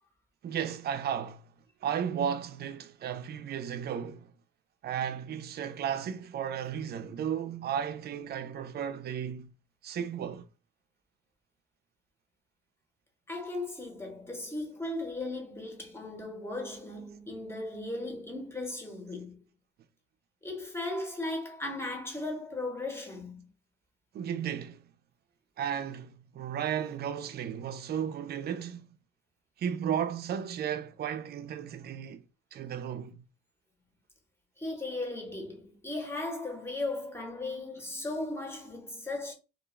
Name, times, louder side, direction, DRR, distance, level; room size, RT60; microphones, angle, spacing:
voice 1, 0.4-1.5 1.8-4.3 4.8-9.5 9.8-10.5 24.1-24.9 25.6-29.0 29.6-32.2 32.5-33.2, right 8 dB, 55° right, 0.4 m, -34 dB
voice 2, 13.3-19.4 20.4-23.4 34.6-39.3, left 2 dB, 10° left, 1.0 m, -37 dB
2.4 x 2.3 x 3.1 m
cardioid pair, 90°, 20 cm